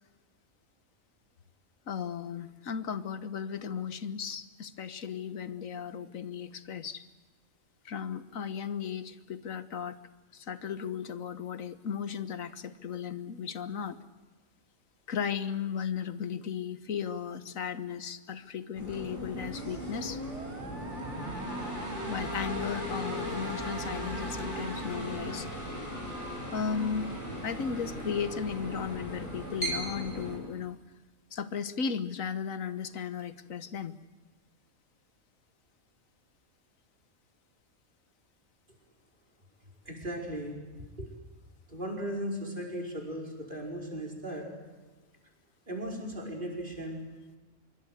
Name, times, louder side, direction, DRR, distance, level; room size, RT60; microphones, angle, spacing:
voice 1, 1.9-7.0 7.8-10.0 10.3-14.0 15.1-20.2 22.1-25.5 26.5-27.1 27.4-30.8 31.3-34.0, left 7 dB, 85° left, 13 dB, 1.6 m, -35 dB
sound 1, 18.8-30.4, equal, 35° left, 7.3 m, -37 dB
Musical instrument, 19.0-25.8, right 3 dB, 60° right, 2.1 m, -45 dB
voice 2, 39.9-40.6 41.0-41.1 41.7-44.5 45.7-47.0, equal, 40° right, 0 dB, 5.3 m, -37 dB
25.5 x 23.0 x 8.1 m, 1.2 s
omnidirectional pair, 1.4 m